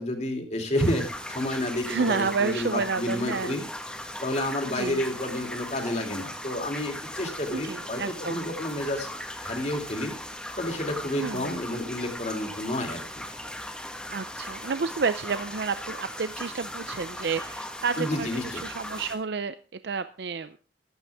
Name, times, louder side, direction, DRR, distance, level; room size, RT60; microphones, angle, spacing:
voice 1, 0.0-3.6 4.2-8.0 8.3-9.1 9.4-10.1 10.6-13.2 18.0-18.6, left 1 dB, 40° left, 3 dB, 2.8 m, -30 dB
sound 1, 0.8-19.2, left 1 dB, 5° left, 1.4 m, -38 dB
voice 2, 1.9-3.5 4.7-5.0 7.5-8.5 11.2-11.5 14.1-19.6 19.8-20.6, right 5 dB, 70° right, 11 dB, 0.5 m, -30 dB
15.0 x 12.0 x 3.5 m, 0.36 s
head